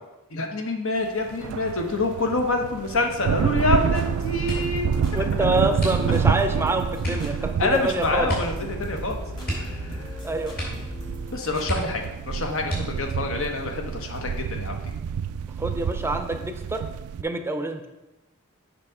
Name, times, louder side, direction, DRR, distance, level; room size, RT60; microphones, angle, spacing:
voice 1, 0.3-5.1 7.6-9.2 9.6-10.0 11.3-14.9, left 2 dB, 65° left, 3 dB, 1.1 m, -27 dB
sound 1, 1.2-17.2, right 7 dB, 75° right, 0.3 m, -29 dB
sound 2, 3.7-11.8, equal, 20° left, 1.6 m, -37 dB
sound 3, 4.4-4.9 5.7-6.4 7.0-7.3 8.2-8.6 8.9-9.0 9.4-10.2 10.5-10.9 11.2-11.3 11.6-12.2 12.6-13.2 13.9-14.5 14.9-15.3, equal, 45° left, 3.1 m, -32 dB
voice 2, 5.1-8.3 10.2-10.5 15.6-16.8 17.2-17.9, right 2 dB, 10° right, 6 dB, 0.6 m, -26 dB
7.3 x 5.5 x 4.8 m, 1.0 s
head